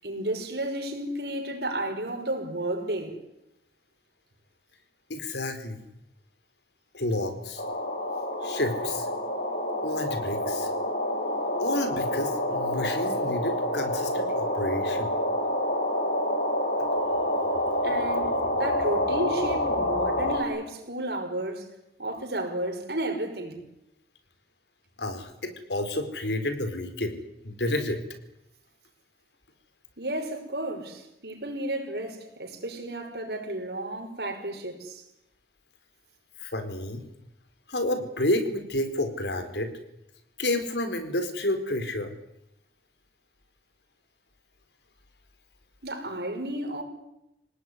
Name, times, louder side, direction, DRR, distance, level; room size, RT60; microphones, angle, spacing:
voice 1, 0.0-3.2 17.8-21.7 22.0-23.6 30.0-35.0 45.8-46.8, right 1 dB, 70° right, 5.8 m, -32 dB
voice 2, 5.1-5.8 6.9-7.6 8.4-9.1 9.8-10.7 11.6-15.1 25.0-27.2 27.4-28.0 36.4-37.0 37.7-39.7 40.4-42.1, left 1 dB, 80° left, 4.3 m, -30 dB
sound 1, 7.6-20.4, left 1 dB, 55° left, 5.3 m, -28 dB
27.5 x 18.5 x 9.8 m
head